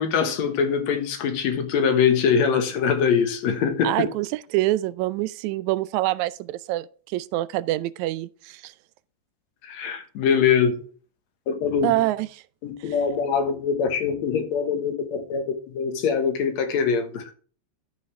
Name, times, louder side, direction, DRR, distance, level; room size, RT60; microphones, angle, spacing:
voice 1, 0.0-3.9 9.6-10.7 11.5-12.0 12.6-15.4 15.7-17.3, left 6 dB, 70° left, 2.4 m, -23 dB
voice 2, 3.8-8.7 11.8-12.4 12.8-13.0, right 17 dB, 85° right, 1.9 m, -26 dB
13.0 x 6.0 x 3.2 m
omnidirectional pair, 3.3 m